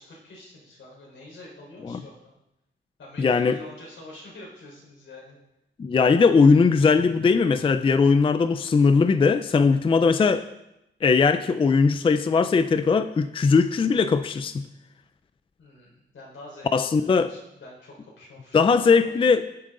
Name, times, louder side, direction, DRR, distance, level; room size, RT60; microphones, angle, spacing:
voice 1, 0.0-2.3 3.0-5.4 15.6-19.4, left 2 dB, 80° left, -3 dB, 4.2 m, -46 dB
voice 2, 3.2-3.6 5.8-10.5 11.0-14.7 16.7-17.3 18.5-19.4, left 5 dB, 25° left, 11 dB, 0.4 m, -19 dB
16.5 x 7.8 x 3.8 m, 0.88 s
wide cardioid pair, 170°, 20 cm